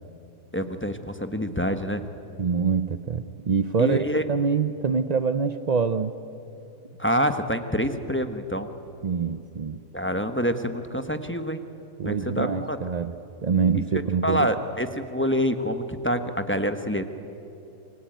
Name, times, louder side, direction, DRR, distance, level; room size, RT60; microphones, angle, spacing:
voice 1, 0.5-2.0 3.8-4.2 7.0-8.7 9.9-11.6 12.0-12.8 13.7-13.8 14.2-17.0, equal, 10° left, 8 dB, 1.0 m, -26 dB
voice 2, 2.4-6.1 9.0-9.8 12.0-14.5, right 5 dB, 80° right, 11 dB, 0.3 m, -25 dB
27.0 x 23.0 x 9.2 m, 2.8 s
omnidirectional pair, 1.7 m